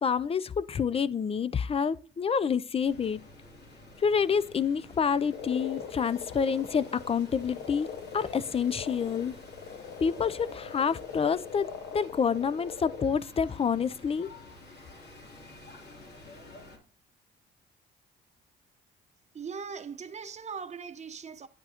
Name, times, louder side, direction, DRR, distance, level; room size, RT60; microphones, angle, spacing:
voice 1, 0.0-3.2 4.0-9.3 10.0-11.7 11.9-14.3, left 6 dB, 30° left, 0.4 m, -28 dB
sound 1, 2.8-16.8, left 2 dB, 55° left, 2.7 m, -51 dB
Frog, 5.3-13.1, left 7 dB, 85° left, 0.8 m, -42 dB
voice 2, 19.3-21.5, right 6 dB, 35° right, 0.9 m, -40 dB
10.0 x 8.6 x 2.8 m
cardioid pair, 90°, 20 cm